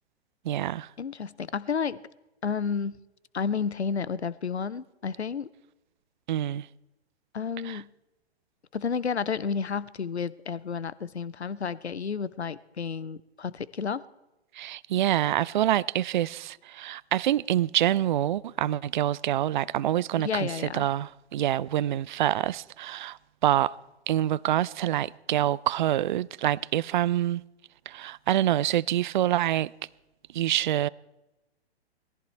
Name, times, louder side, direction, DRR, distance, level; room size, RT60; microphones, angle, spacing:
voice 1, 0.4-0.9 6.3-6.7 7.6-7.8 14.5-23.8 24.1-27.4 27.9-29.7 30.3-30.9, right 12 dB, 50° right, 0.4 m, -26 dB
voice 2, 1.0-2.0 2.4-3.0 3.3-5.5 7.3-7.9 8.7-14.0 20.2-20.9, left 6 dB, 80° left, 0.7 m, -31 dB
19.5 x 14.5 x 4.4 m
figure-of-eight pair, 115°, 32 cm